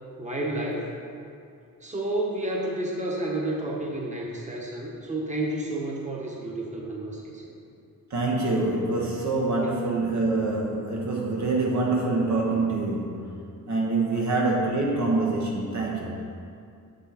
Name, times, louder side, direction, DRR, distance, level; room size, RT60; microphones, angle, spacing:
voice 1, 0.2-0.9 1.8-7.5 9.6-9.7 14.1-14.2, right 1 dB, 20° right, -2 dB, 1.2 m, -31 dB
voice 2, 8.1-16.2, right 2 dB, 55° right, -2 dB, 1.1 m, -26 dB
7.6 x 6.8 x 4.2 m, 2.4 s
wide cardioid pair, 135°, 34 cm